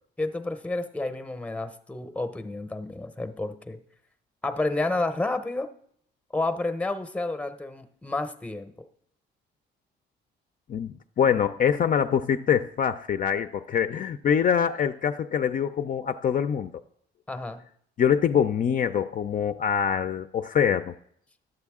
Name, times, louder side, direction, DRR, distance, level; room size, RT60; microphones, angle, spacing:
voice 1, 0.2-3.8 4.4-5.7 6.3-8.9 17.3-17.6, left 2 dB, 5° left, 10 dB, 0.7 m, -30 dB
voice 2, 10.7-16.7 18.0-20.9, left 8 dB, 45° left, 9 dB, 0.4 m, -24 dB
11.0 x 7.8 x 3.6 m, 0.67 s
cardioid pair, 90°, 20 cm